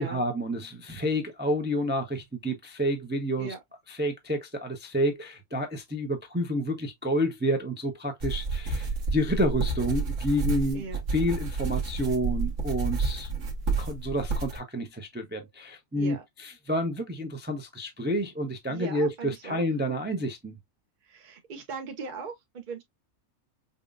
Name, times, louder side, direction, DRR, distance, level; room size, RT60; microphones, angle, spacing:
voice 1, 0.0-3.5 3.9-10.8 11.1-13.5 13.8-20.6, equal, 10° right, 0.5 m, -29 dB
sound 1, 8.2-14.6, right 3 dB, 60° right, 1.4 m, -30 dB
voice 2, 15.9-16.2 18.7-19.6 21.0-22.8, right 5 dB, 40° right, 0.8 m, -38 dB
5.3 x 2.4 x 2.4 m
omnidirectional pair, 1.5 m